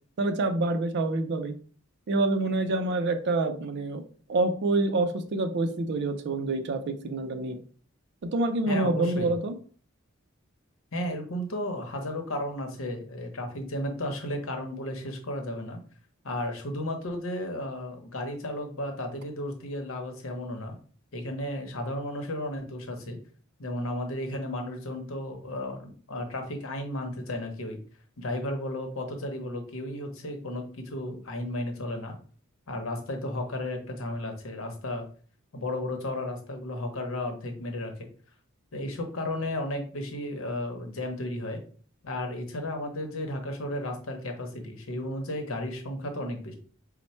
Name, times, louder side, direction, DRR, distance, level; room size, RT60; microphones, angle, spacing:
voice 1, 0.2-1.5 2.1-7.6 8.2-9.6, right 2 dB, 55° right, 8 dB, 0.4 m, -27 dB
voice 2, 8.7-9.3 10.9-15.8 16.2-20.8 21.1-23.2 23.6-27.8 28.2-32.2 32.7-35.1 35.5-37.9 38.7-41.6 42.0-46.5, left 1 dB, 75° left, 5 dB, 0.9 m, -34 dB
4.2 x 2.1 x 4.3 m, 0.43 s
head